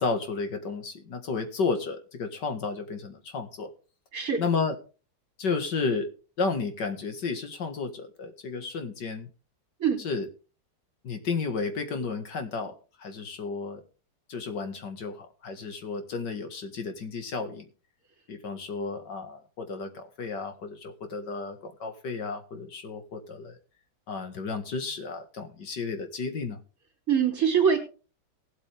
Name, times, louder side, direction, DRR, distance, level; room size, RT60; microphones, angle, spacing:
voice 1, 0.0-3.7 4.4-4.7 5.4-6.1 6.4-9.3 10.0-10.3 11.0-12.7 13.0-13.8 14.3-17.7 18.3-23.6 24.1-26.6, left 4 dB, 75° left, 6 dB, 2.4 m, -32 dB
voice 2, 27.1-27.8, right 7 dB, 50° right, 4 dB, 3.6 m, -23 dB
18.5 x 8.1 x 3.5 m, 0.35 s
omnidirectional pair, 1.9 m